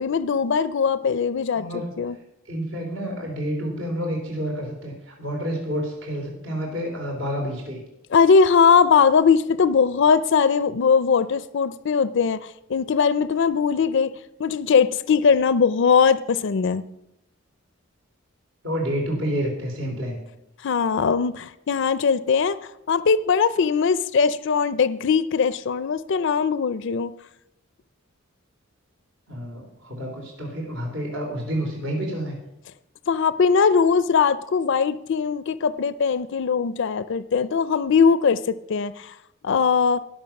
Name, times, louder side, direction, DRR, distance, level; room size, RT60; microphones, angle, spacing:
voice 1, 0.0-1.7 2.0-2.2 8.1-14.1 14.4-16.8 20.6-22.6 22.9-27.1 33.1-39.2 39.4-40.0, left 6 dB, 65° left, 15 dB, 0.4 m, -20 dB
voice 2, 1.5-1.9 2.5-7.8 18.6-20.2 29.3-32.4, equal, 65° right, 0 dB, 3.5 m, -29 dB
19.5 x 6.7 x 5.9 m, 0.87 s
head